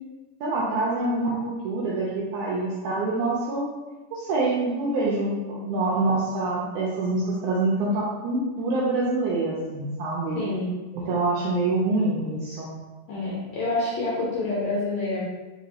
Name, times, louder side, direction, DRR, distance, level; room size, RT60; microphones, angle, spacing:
voice 1, 0.4-3.7 4.1-10.4 10.9-12.8, right 2 dB, 85° right, -5 dB, 1.7 m, -26 dB
voice 2, 10.3-10.7 13.1-15.2, left 2 dB, 75° left, -7 dB, 1.7 m, -27 dB
5.0 x 3.4 x 2.8 m, 1.2 s
omnidirectional pair, 4.1 m